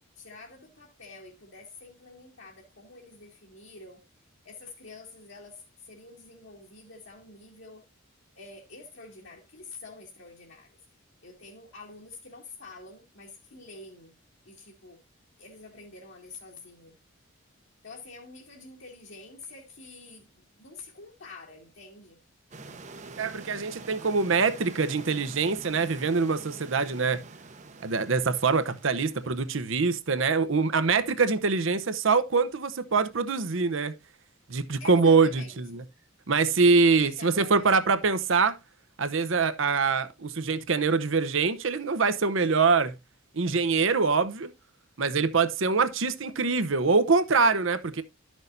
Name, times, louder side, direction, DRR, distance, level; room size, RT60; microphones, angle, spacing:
voice 1, 0.2-4.0 4.4-7.8 8.3-10.7 11.2-14.2 14.4-15.0 15.4-17.0 17.8-22.2 34.8-35.8 37.0-37.8, left 3 dB, 60° left, 1.9 m, -47 dB
sound 1, 22.5-29.7, right 3 dB, 35° right, 0.8 m, -46 dB
voice 2, 23.2-27.2 27.8-33.9 34.5-35.8 36.3-38.6 39.0-42.9 43.3-44.5 45.0-48.0, right 4 dB, 65° right, 0.8 m, -24 dB
12.0 x 6.3 x 2.6 m
head